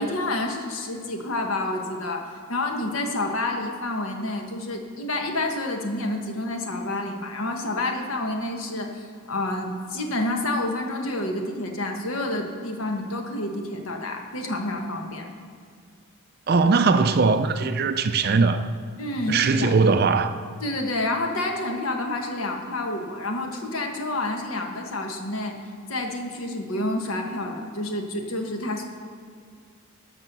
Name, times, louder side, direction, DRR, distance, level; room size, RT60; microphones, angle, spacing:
voice 1, 0.0-15.3 17.8-17.9 19.0-19.7 20.6-25.6 25.9-28.8, left 2 dB, 65° left, 1.3 m, -29 dB
voice 2, 16.5-18.7 19.3-20.3, right 4 dB, 45° right, 0.4 m, -20 dB
12.0 x 6.4 x 6.1 m
head